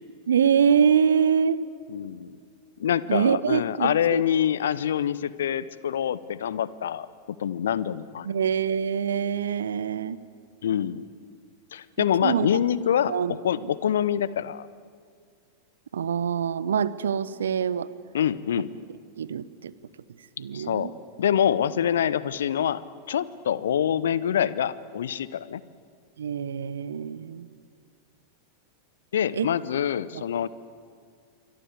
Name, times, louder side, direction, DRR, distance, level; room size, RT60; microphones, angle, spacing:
voice 1, 0.3-1.7 3.1-4.2 8.2-10.2 12.0-12.5 13.1-13.4 15.9-17.9 19.2-19.7 20.4-20.9 26.2-27.5 29.3-29.5 30.1-30.2, right 7 dB, 65° right, 18 dB, 0.9 m, -24 dB
voice 2, 1.9-2.4 2.8-7.1 7.4-8.3 10.6-11.1 11.7-13.1 13.4-14.7 18.1-18.7 20.5-20.9 21.2-22.8 23.1-25.6 29.1-30.5, left 9 dB, 65° left, 18 dB, 0.9 m, -25 dB
27.5 x 24.0 x 8.4 m, 2.1 s
figure-of-eight pair, 90°, 0 cm